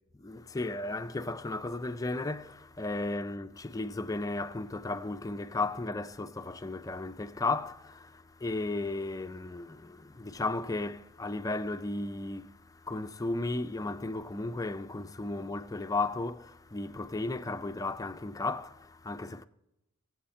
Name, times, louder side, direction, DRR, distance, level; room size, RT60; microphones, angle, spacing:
voice 1, 0.1-19.5, left 2 dB, 15° left, 0.5 m, -35 dB
23.0 x 7.9 x 4.3 m
head